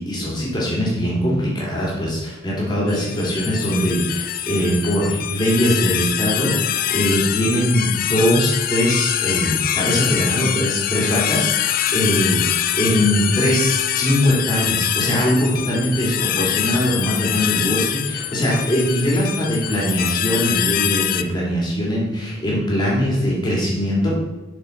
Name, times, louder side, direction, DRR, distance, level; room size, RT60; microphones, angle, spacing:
voice 1, 0.0-12.4 12.8-24.1, equal, 20° left, -5 dB, 2.8 m, -21 dB
sound 1, 2.9-21.2, left 11 dB, 45° left, 0.4 m, -24 dB
6.9 x 6.4 x 5.2 m, 1.0 s
head